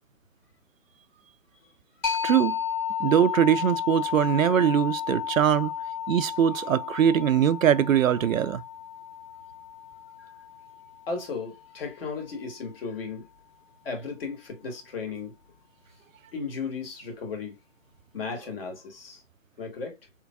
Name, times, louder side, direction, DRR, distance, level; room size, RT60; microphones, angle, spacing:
sound 1, 2.0-11.4, left 8 dB, 20° left, 1.5 m, -33 dB
voice 1, 2.2-2.6 3.0-5.7 6.1-8.6, right 9 dB, 85° right, 0.5 m, -22 dB
voice 2, 11.1-13.3 13.8-15.3 16.3-17.6 18.1-19.2 19.6-20.0, left 4 dB, 45° left, 2.0 m, -35 dB
4.4 x 3.6 x 2.3 m
hypercardioid pair, 155°, 39 cm